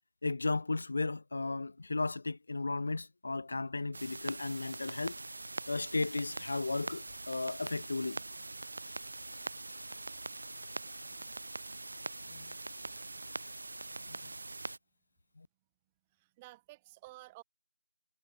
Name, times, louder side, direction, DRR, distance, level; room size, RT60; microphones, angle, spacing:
voice 1, 0.2-5.2 5.7-8.2 12.3-12.5 14.1-14.2 15.4-15.5, left 3 dB, 40° left, 2.0 m, -35 dB
sound 1, 3.9-14.8, right 2 dB, 50° right, 1.4 m, -43 dB
voice 2, 16.1-17.4, right 20 dB, 10° right, 2.8 m, -53 dB
figure-of-eight pair, 170°, 0 cm